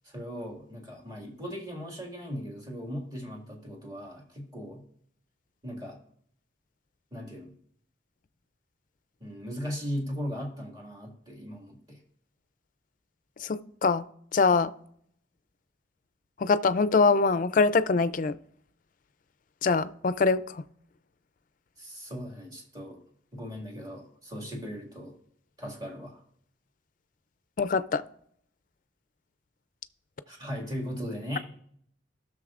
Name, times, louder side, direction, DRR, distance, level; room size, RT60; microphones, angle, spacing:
voice 1, 0.0-4.8 5.6-6.0 7.1-7.6 9.2-12.0 21.8-23.0 23.3-25.1 25.6-26.2 30.3-31.4, equal, 20° right, -1 dB, 2.0 m, -38 dB
voice 2, 13.5-14.0 14.3-14.7 16.4-18.3 19.6-20.4 27.6-28.0, left 4 dB, 45° left, 14 dB, 0.4 m, -23 dB
17.5 x 6.5 x 2.5 m, 0.65 s
head